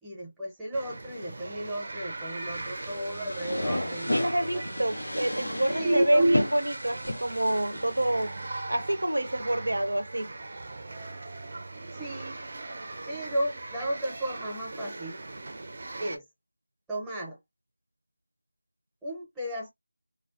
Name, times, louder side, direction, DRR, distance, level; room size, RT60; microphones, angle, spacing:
voice 1, 0.0-4.7 5.7-6.4 11.9-12.4 13.1-15.2 16.0-16.2 16.9-17.4 19.0-19.7, right 1 dB, ahead, 0.6 m, -32 dB
sound 1, 0.7-16.2, right 2 dB, 40° right, 0.4 m, -40 dB
sound 2, 2.5-8.6, left 1 dB, 75° left, 0.4 m, -34 dB
voice 2, 4.1-8.3 8.7-10.3, right 1 dB, 85° right, 0.6 m, -27 dB
2.4 x 2.2 x 2.4 m
figure-of-eight pair, 170°, 0 cm